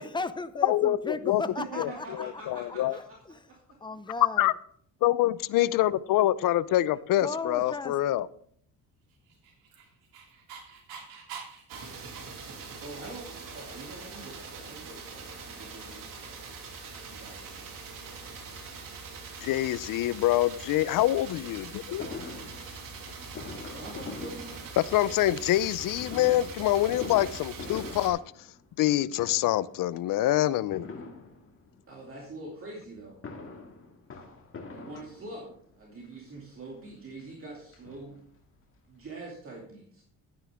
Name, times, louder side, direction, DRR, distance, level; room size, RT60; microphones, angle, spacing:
voice 1, 0.0-2.1 2.5-2.6 2.9-3.3 3.8-4.5 7.2-8.0, left 3 dB, 15° left, 12 dB, 0.5 m, -35 dB
voice 2, 0.6-1.4 1.8-1.9 2.5-3.0 4.4-4.5 5.0-8.3 19.4-22.0 24.9-28.2 28.8-30.9, left 14 dB, 60° left, 18 dB, 0.6 m, -25 dB
voice 3, 1.6-3.2 3.5-3.6 5.5-5.8 12.8-16.4 17.1-17.6 23.6-24.7 31.9-33.2 34.7-38.2 38.9-40.0, right 2 dB, 35° right, -2 dB, 2.5 m, -44 dB
Dog, 9.3-13.1, right 6 dB, 80° right, 2.8 m, -46 dB
sound 1, 11.7-28.1, right 4 dB, 65° right, 2.7 m, -43 dB
Fireworks, 22.0-25.2 26.0-28.9 29.1-29.8 30.7-31.8 33.0-35.6 36.4-36.5 36.8-36.9 37.2-38.5 38.8-38.9 39.0-39.1, left 4 dB, 35° left, 2.1 m, -43 dB
11.5 x 9.7 x 3.5 m, 0.63 s
cardioid pair, 120°, 36 cm